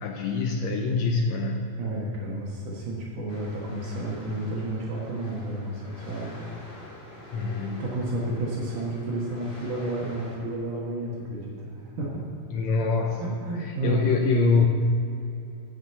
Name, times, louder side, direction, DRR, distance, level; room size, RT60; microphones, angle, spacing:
voice 1, 0.0-1.6 7.3-7.8 12.5-13.2 13.8-14.7, left 4 dB, 80° left, 2 dB, 1.6 m, -24 dB
voice 2, 1.8-6.5 7.8-12.2 13.2-14.0, right 2 dB, 70° right, -4 dB, 2.9 m, -31 dB
sound 1, 3.3-10.4, left 1 dB, 45° left, 4.1 m, -46 dB
8.6 x 7.8 x 7.9 m, 2.8 s
omnidirectional pair, 3.9 m